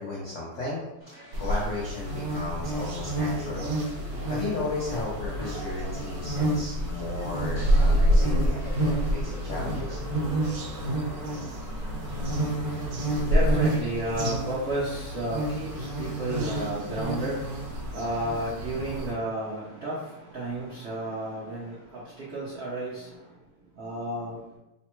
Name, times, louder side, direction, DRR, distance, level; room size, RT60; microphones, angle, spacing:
voice 1, 0.0-3.7 4.3-10.0, left 2 dB, 75° left, -6 dB, 0.6 m, -35 dB
sound 1, 1.0-9.8, right 1 dB, 5° right, 1.0 m, -52 dB
sound 2, 1.3-19.1, right 1 dB, 65° right, 1.2 m, -28 dB
sound 3, 3.1-11.5 12.5-12.6, right 1 dB, 45° right, 1.6 m, -45 dB
voice 2, 12.1-23.4 23.8-24.5, right 1 dB, 85° right, -7 dB, 0.5 m, -33 dB
3.4 x 2.2 x 4.3 m, 0.92 s
omnidirectional pair, 2.3 m